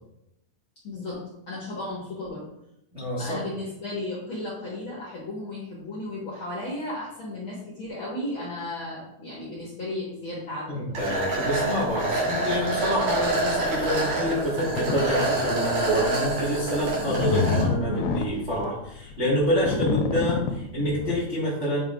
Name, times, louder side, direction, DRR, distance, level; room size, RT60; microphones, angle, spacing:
voice 1, 0.8-2.4 3.2-11.0, left 1 dB, 60° left, -5 dB, 1.3 m, -34 dB
voice 2, 2.9-3.4 10.7-21.8, equal, 80° right, -7 dB, 0.6 m, -27 dB
sound 1, 10.9-17.6, right 2 dB, 50° right, 3.2 m, -27 dB
sound 2, 14.6-15.0 15.5-15.7 16.2-21.2, left 5 dB, 80° left, 2.3 m, -27 dB
8.9 x 4.8 x 2.5 m, 0.84 s
omnidirectional pair, 4.4 m